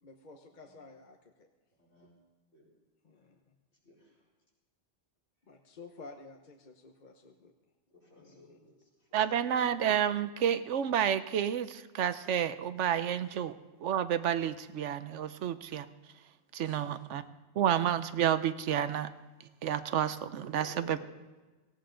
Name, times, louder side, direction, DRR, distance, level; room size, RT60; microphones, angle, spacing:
voice 1, 0.0-1.3 3.0-3.5 5.5-7.5 8.2-8.7 9.6-9.7 16.6-16.9 17.3-17.4, left 3 dB, 45° left, 3 dB, 0.9 m, -52 dB
voice 2, 1.8-2.1 2.5-2.7 3.8-4.1 8.0-8.7 20.5-21.1, left 2 dB, 65° left, -4 dB, 5.0 m, -55 dB
voice 3, 9.1-13.5 13.8-15.9 16.5-17.2 17.6-19.1 19.6-21.0, right 9 dB, 75° right, 12 dB, 1.0 m, -30 dB
17.5 x 16.0 x 3.8 m, 1.3 s
omnidirectional pair, 1.2 m